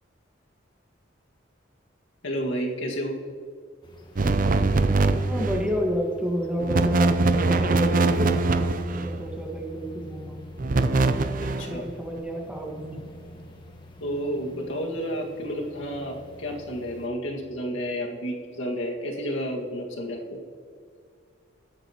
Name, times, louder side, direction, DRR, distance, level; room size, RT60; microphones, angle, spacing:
voice 1, 2.2-3.2 11.4-11.9 14.0-20.4, equal, 85° left, 0 dB, 2.0 m, -31 dB
sound 1, 3.8-17.1, equal, 25° left, 1.4 m, -46 dB
sound 2, 4.2-5.7 6.6-9.2 10.6-11.8, right 3 dB, 45° right, 0.6 m, -22 dB
voice 2, 5.3-8.3 8.9-10.4 11.7-13.0, equal, 5° right, -1 dB, 1.6 m, -30 dB
21.0 x 9.3 x 3.0 m, 2.2 s
head